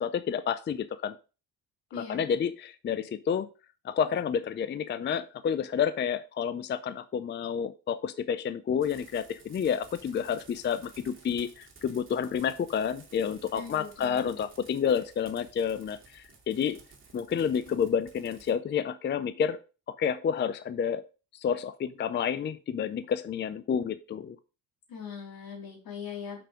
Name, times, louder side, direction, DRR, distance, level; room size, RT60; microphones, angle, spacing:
voice 1, 0.0-1.2 1.9-3.5 3.8-16.8 17.1-19.6 20.0-21.0 21.3-24.4, left 7 dB, 30° left, 12 dB, 0.4 m, -30 dB
voice 2, 1.9-2.2 13.5-14.4 24.9-26.4, left 6 dB, 80° left, 0 dB, 3.3 m, -41 dB
sound 1, 8.8-18.5, right 4 dB, 35° right, 2.2 m, -54 dB
5.8 x 5.3 x 4.9 m, 0.33 s
cardioid pair, 130°, 35 cm